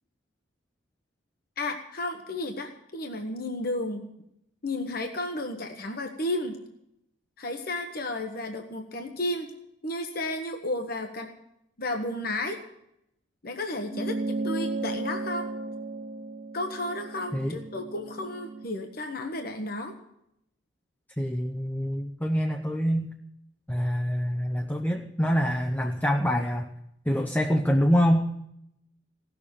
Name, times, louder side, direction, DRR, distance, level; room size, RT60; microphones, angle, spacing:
voice 1, 1.6-4.1 4.6-6.6 7.4-9.5 9.8-11.3 11.8-12.6 13.4-15.5 16.5-19.9, left 1 dB, 50° left, 5 dB, 1.2 m, -33 dB
sound 1, 13.9-18.7, right 2 dB, 30° right, 0.5 m, -34 dB
voice 2, 21.2-23.1 23.7-26.7 27.1-28.3, equal, 10° left, 3 dB, 0.7 m, -25 dB
17.0 x 7.0 x 8.7 m, 0.80 s
head